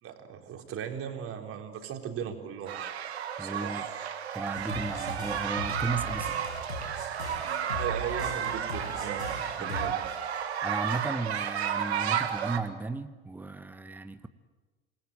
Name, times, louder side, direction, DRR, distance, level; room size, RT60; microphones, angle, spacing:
voice 1, 0.0-2.7 3.4-3.8 7.8-9.3 9.6-10.1, right 8 dB, 45° right, 4 dB, 3.9 m, -37 dB
sound 1, 2.7-12.6, right 9 dB, 75° right, 1.9 m, -32 dB
voice 2, 3.4-3.9 4.3-6.4 9.6-9.9 10.6-14.3, right 3 dB, 5° right, 10 dB, 1.2 m, -35 dB
sound 2, 4.5-9.9, equal, 85° left, 5.0 m, -39 dB
27.5 x 20.5 x 8.8 m, 1.3 s
figure-of-eight pair, 70°, 32 cm